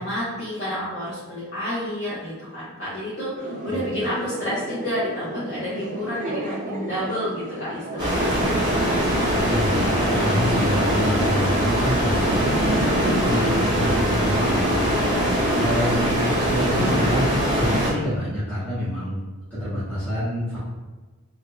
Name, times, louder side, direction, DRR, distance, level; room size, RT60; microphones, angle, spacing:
voice 1, 0.0-9.2, equal, 50° left, -12 dB, 1.1 m, -30 dB
sound 1, 3.4-9.0, right 1 dB, 35° right, 0.3 m, -34 dB
sound 2, 8.0-17.9, equal, 20° right, 0.9 m, -22 dB
voice 2, 9.5-15.0 15.6-19.2 19.5-20.6, equal, 10° left, -13 dB, 1.2 m, -27 dB
3.6 x 3.0 x 2.3 m, 1.2 s
head